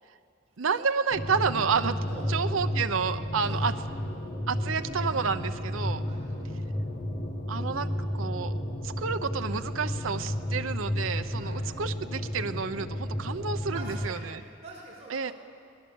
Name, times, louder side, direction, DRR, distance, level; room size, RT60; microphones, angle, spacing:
voice 1, 0.6-2.0 2.3-3.7 4.5-6.0 7.5-8.5 8.8-14.4 15.1-15.3, right 5 dB, 80° right, 8 dB, 0.7 m, -30 dB
sound 1, 1.1-14.1, left 1 dB, 40° left, 1.8 m, -32 dB
voice 2, 3.4-4.0 6.1-6.2 9.5-10.5 11.4-11.6 13.7-15.3, right 2 dB, 30° right, -4 dB, 5.3 m, -46 dB
25.0 x 19.5 x 7.0 m, 2.3 s
head